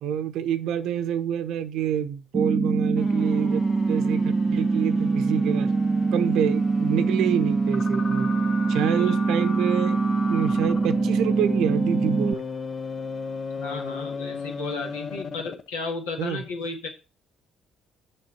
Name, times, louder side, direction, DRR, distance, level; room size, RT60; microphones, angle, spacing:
voice 1, 0.0-5.7 6.1-8.3 8.7-10.0 10.3-12.4 16.2-16.4, right 10 dB, 65° right, 0.8 m, -27 dB
sound 1, 2.3-12.3, right 4 dB, 25° right, 0.4 m, -23 dB
sound 2, 3.0-15.7, left 5 dB, 40° left, 0.7 m, -36 dB
voice 2, 8.8-9.1 13.6-16.9, left 3 dB, 80° left, 1.8 m, -34 dB
6.6 x 5.8 x 5.8 m
hypercardioid pair, 50°, 0 cm